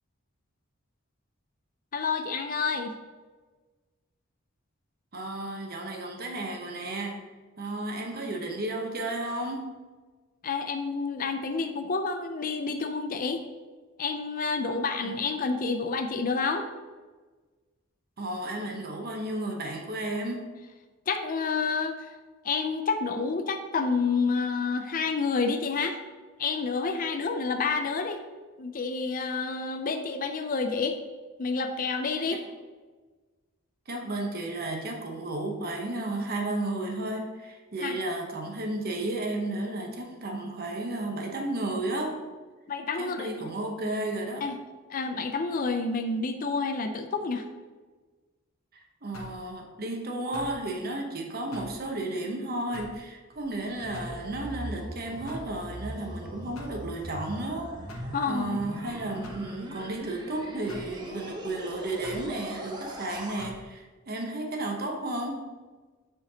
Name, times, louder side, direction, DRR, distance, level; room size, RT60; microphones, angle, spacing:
voice 1, 1.9-2.9 10.4-13.4 14.0-16.7 21.1-22.1 22.4-26.0 26.4-28.2 28.6-31.0 31.4-32.4 37.8-38.0 42.7-43.5 44.4-44.6 44.9-47.5 58.1-58.6, left 4 dB, 40° left, 7 dB, 0.5 m, -29 dB
voice 2, 5.1-7.2 7.6-9.7 15.0-15.2 18.2-20.5 33.9-42.2 43.0-44.5 48.7-65.5, right 2 dB, 50° right, 2 dB, 0.9 m, -33 dB
sound 1, 49.1-49.4 50.3-50.6 51.5-51.8 52.7-53.0 53.9-54.2 55.3-55.5 56.5-56.8 57.9-58.1 59.2-59.5 60.7-60.9 62.0-62.3 63.4-63.6, left 1 dB, 80° left, 1.0 m, -43 dB
sound 2, 53.3-63.4, right 1 dB, 20° right, 0.8 m, -40 dB
7.4 x 5.0 x 2.9 m, 1.3 s
head